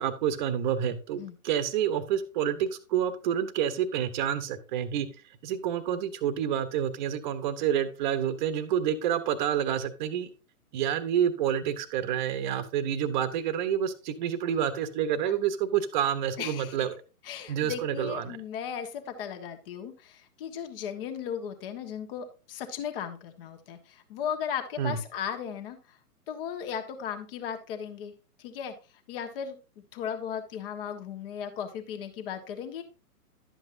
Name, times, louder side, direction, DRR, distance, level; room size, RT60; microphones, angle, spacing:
voice 1, 0.0-5.1 5.4-10.3 10.7-16.9 17.5-18.4 24.8-25.0, right 9 dB, 30° right, 11 dB, 1.0 m, -28 dB
voice 2, 16.4-16.8 17.2-26.0 26.3-28.1 28.4-28.8 29.1-29.6 29.9-32.8, left 8 dB, 40° left, 6 dB, 1.5 m, -36 dB
12.0 x 7.8 x 2.7 m, 0.33 s
hypercardioid pair, 135°, 45 cm